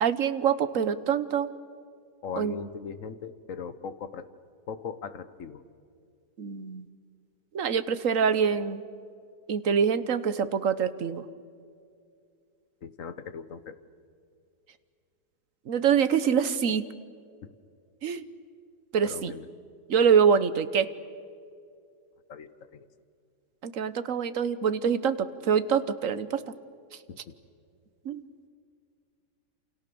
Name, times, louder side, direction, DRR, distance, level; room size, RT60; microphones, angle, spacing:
voice 1, 0.0-1.5 2.4-2.5 6.4-6.9 7.5-8.8 9.5-11.2 15.7-16.9 18.0-18.2 18.9-19.3 19.9-20.9 23.6-26.5 26.9-27.0 28.0-28.2, right 7 dB, 55° right, 13 dB, 1.3 m, -25 dB
voice 2, 2.2-4.3 4.7-5.6 12.8-13.8 17.4-17.5 19.0-19.5 22.3-22.9 27.1-27.4, left 6 dB, 50° left, 12 dB, 1.4 m, -39 dB
28.5 x 28.5 x 7.0 m, 2.3 s
omnidirectional pair, 1.9 m